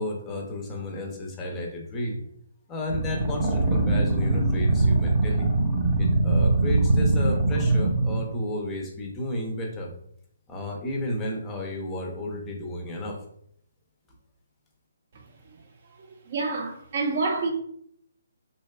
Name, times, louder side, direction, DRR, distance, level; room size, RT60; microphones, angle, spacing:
voice 1, 0.0-2.2 2.7-5.5 6.0-9.9 10.5-13.2, left 1 dB, 15° left, 0.5 m, -32 dB
sound 1, 2.9-8.2, right 2 dB, 20° right, 0.8 m, -22 dB
voice 2, 16.3-17.5, right 3 dB, 50° right, 0.5 m, -27 dB
2.6 x 2.2 x 2.3 m
hypercardioid pair, 145°, 0 cm